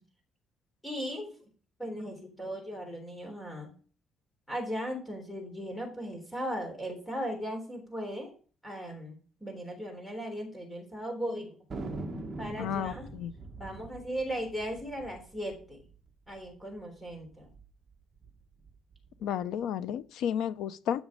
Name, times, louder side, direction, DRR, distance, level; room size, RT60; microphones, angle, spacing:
voice 1, 0.8-1.3 1.8-3.7 4.5-8.3 8.6-11.6 12.4-13.1 13.6-15.9 16.3-17.5, equal, 5° left, 3.5 m, -37 dB
Thunder, 11.7-16.5 16.8-16.9 17.1-17.6 18.1-19.3, right 2 dB, 25° right, 1.8 m, -43 dB
voice 2, 12.6-13.3 19.2-21.0, left 9 dB, 80° left, 0.8 m, -32 dB
13.0 x 6.3 x 4.9 m
cardioid pair, 175°, 0 cm